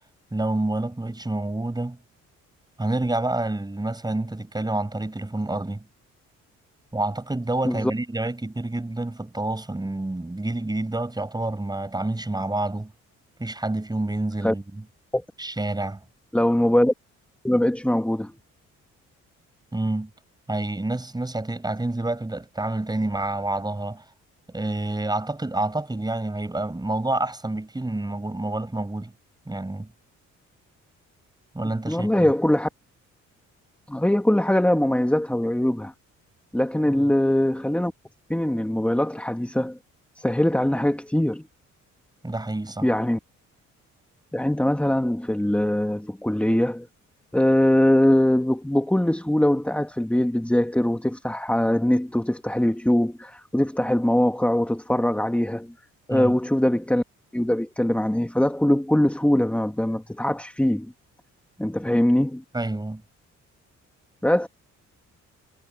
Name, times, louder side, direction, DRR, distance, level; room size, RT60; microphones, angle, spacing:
voice 1, 0.3-2.0 2.8-5.8 6.9-12.9 13.4-14.8 15.4-16.0 19.7-20.1 20.5-24.1 24.5-29.1 29.5-29.9 31.5-32.3 36.9-37.1 42.2-42.9 56.1-56.3 62.5-63.0, right 2 dB, 15° right, 6.5 m, -28 dB
voice 2, 16.3-16.9 17.4-18.3 31.9-32.7 33.9-35.9 36.5-37.9 38.3-39.8 40.2-41.4 42.8-43.2 44.3-46.9 47.3-55.7 56.1-57.0 57.3-60.9 61.6-62.4 64.2-64.5, left 1 dB, 5° left, 2.2 m, -22 dB
cardioid pair, 90°, 30 cm